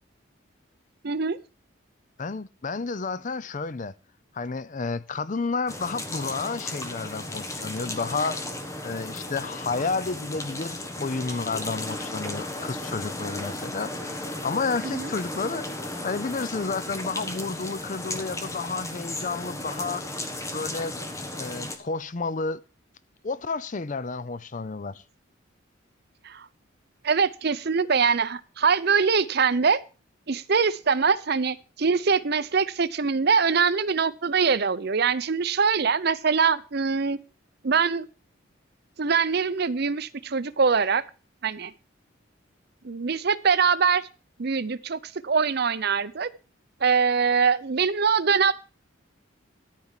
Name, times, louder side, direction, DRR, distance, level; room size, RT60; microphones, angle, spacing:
voice 1, 1.0-1.4 14.8-15.1 26.2-26.5 27.0-29.8 30.3-37.2 37.6-38.1 39.0-41.0 41.4-41.7 42.8-44.0 44.4-46.3 46.8-48.5, right 5 dB, 50° right, 0.6 m, -23 dB
voice 2, 2.2-3.9 4.3-8.4 8.8-15.6 16.0-20.0 20.5-21.0 21.4-22.6 23.2-25.0, left 4 dB, 40° left, 0.5 m, -31 dB
sound 1, 5.7-21.8, left 2 dB, 15° left, 1.2 m, -35 dB
13.5 x 4.6 x 7.3 m
head